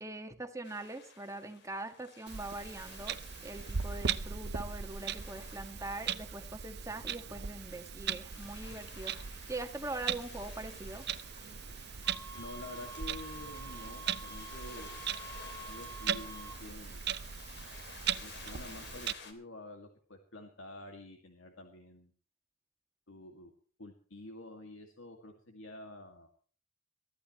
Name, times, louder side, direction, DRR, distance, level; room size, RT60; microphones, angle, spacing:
voice 1, 0.0-3.2 3.4-11.1, right 2 dB, 15° right, 6 dB, 1.7 m, -42 dB
sound 1, 0.6-19.3, left 5 dB, 55° left, 2.9 m, -53 dB
Clock, 2.3-19.1, right 7 dB, 55° right, 0.8 m, -39 dB
sound 2, 12.0-16.6, right 3 dB, 15° left, 6.4 m, -48 dB
voice 2, 12.4-15.0 15.7-17.0 18.2-22.1 23.1-23.5 23.8-26.3, left 2 dB, 75° left, 4 dB, 2.2 m, -49 dB
23.0 x 14.0 x 3.1 m, 0.42 s
head